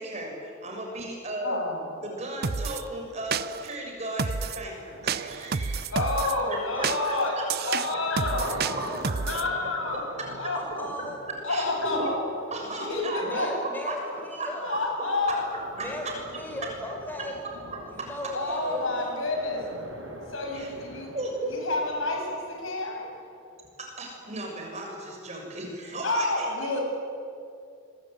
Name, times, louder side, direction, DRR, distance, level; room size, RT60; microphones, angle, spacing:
voice 1, 0.0-1.7 2.0-7.4 7.9-8.0 11.5-12.2 12.5-14.0 14.4-14.8 15.8-16.1 17.7-18.8 20.5-20.7 21.1-21.6 23.8-26.8, right 2 dB, 35° right, 1 dB, 6.7 m, -36 dB
voice 2, 1.4-2.0 5.9-8.5 9.3-10.0 10.4-10.9 11.4-12.2 12.8-13.5 14.6-15.5 18.3-19.6 20.3-21.1 21.5-23.1 26.0-26.8, left 2 dB, 85° left, 1 dB, 7.5 m, -29 dB
sound 1, 2.4-2.8 3.3-3.8 4.2-4.6 5.1-6.3 6.8-9.5, right 5 dB, 50° right, 0.6 m, -30 dB
sound 2, 4.9-23.9, right 1 dB, 85° right, 5.7 m, -46 dB
voice 3, 6.0-7.3 8.4-9.0 10.5-11.2 13.2-14.7 15.8-17.4 17.9-19.4, left 1 dB, 10° left, 1 dB, 5.2 m, -37 dB
26.0 x 23.5 x 9.4 m, 2.5 s
head